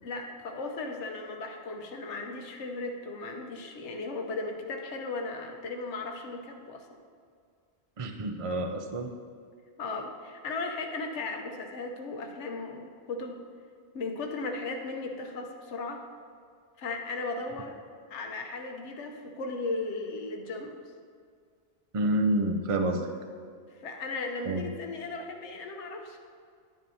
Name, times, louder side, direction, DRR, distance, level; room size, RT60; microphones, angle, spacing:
voice 1, 0.0-6.9 9.8-13.4 13.9-16.0 16.8-17.8 18.1-20.8 23.7-26.2, left 3 dB, 85° left, 3 dB, 1.1 m, -36 dB
voice 2, 8.0-9.1 21.9-23.1 24.5-24.6, right 1 dB, 40° right, 5 dB, 0.5 m, -28 dB
11.0 x 10.0 x 2.7 m, 2.1 s
omnidirectional pair, 1.2 m